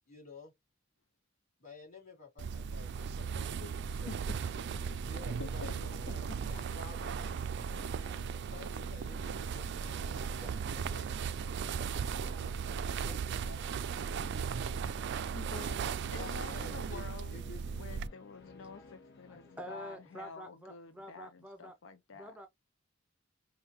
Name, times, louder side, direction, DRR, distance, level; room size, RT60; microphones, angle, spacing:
voice 1, 0.1-0.5 1.6-4.1 4.7-7.3 8.5-11.1 12.9-14.0 16.0-17.0 17.3-17.7 17.9-18.1, left 3 dB, 40° left, 3.3 m, -52 dB
sound 1, 2.4-18.1, right 6 dB, 60° right, 0.3 m, -37 dB
sound 2, 3.5-20.3, left 2 dB, 60° left, 1.0 m, -58 dB
voice 2, 5.4-6.4 12.3-12.5 14.8-14.9 15.3-17.4 17.7-22.4, left 4 dB, 75° left, 0.5 m, -48 dB
voice 3, 19.3-21.7 22.1-22.5, right 1 dB, 5° right, 0.5 m, -48 dB
5.4 x 2.2 x 2.9 m
head